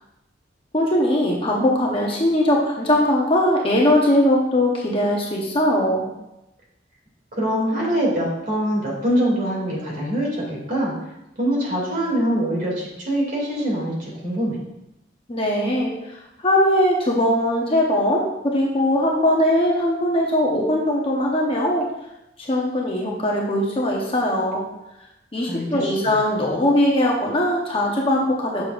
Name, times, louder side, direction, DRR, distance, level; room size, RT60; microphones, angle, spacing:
voice 1, 0.7-6.1 15.3-21.9 22.4-24.6 25.3-28.6, left 1 dB, 30° left, -2 dB, 0.9 m, -20 dB
voice 2, 7.4-10.9 11.4-14.6 25.5-26.1, equal, 50° right, -4 dB, 2.5 m, -24 dB
6.8 x 6.4 x 2.5 m, 0.89 s
head